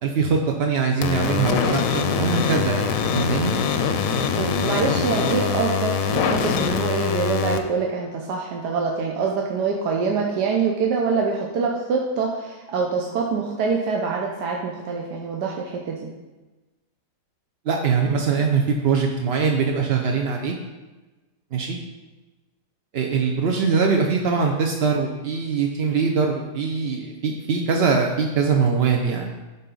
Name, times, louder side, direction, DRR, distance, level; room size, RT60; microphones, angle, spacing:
voice 1, 0.0-3.5 17.7-20.5 21.5-21.8 22.9-29.3, right 5 dB, 60° right, 1 dB, 0.6 m, -22 dB
sound 1, 1.0-7.6, left 6 dB, 65° left, 0.9 m, -23 dB
voice 2, 4.3-16.1, right 5 dB, 80° right, 0 dB, 1.3 m, -25 dB
12.0 x 4.2 x 3.9 m, 1.2 s
omnidirectional pair, 1.8 m